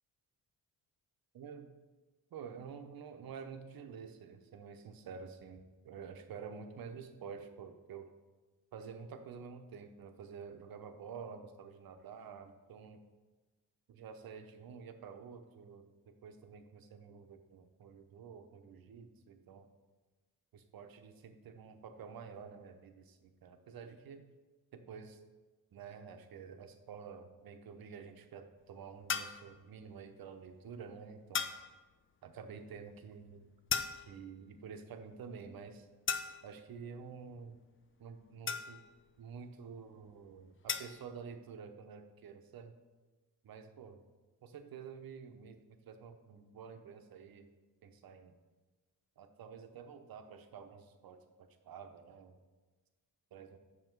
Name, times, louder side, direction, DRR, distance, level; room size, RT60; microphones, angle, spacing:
voice 1, 1.3-1.7 2.3-8.1 8.7-13.0 13.9-19.7 20.5-24.2 24.7-25.2 25.7-31.5 32.2-33.5 34.0-35.9 36.4-37.6 38.0-38.8 39.2-42.7 43.4-44.0 44.4-47.5 47.8-48.3 49.2-52.4 53.3-53.6, right 6 dB, 60° right, 7 dB, 0.9 m, -49 dB
sound 1, 29.1-29.5 31.3-31.7 33.7-34.3 36.1-36.6 38.5-39.0 40.7-41.0, left 6 dB, 30° left, 0.4 m, -36 dB
7.8 x 6.1 x 4.6 m, 1.2 s
cardioid pair, 120°, 40 cm